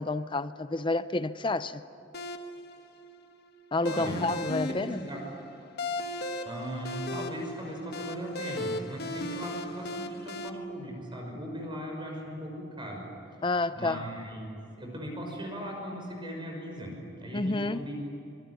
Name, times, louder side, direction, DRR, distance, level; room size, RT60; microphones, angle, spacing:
voice 1, 0.0-1.8 3.7-5.0 13.4-14.0 17.3-17.9, left 2 dB, 25° left, 0.6 m, -29 dB
sound 1, 2.1-10.5, left 1 dB, 55° left, 1.6 m, -37 dB
voice 2, 3.8-5.2 6.4-13.0 13.7-17.9, equal, 25° right, 5.9 m, -38 dB
26.0 x 23.0 x 9.8 m
head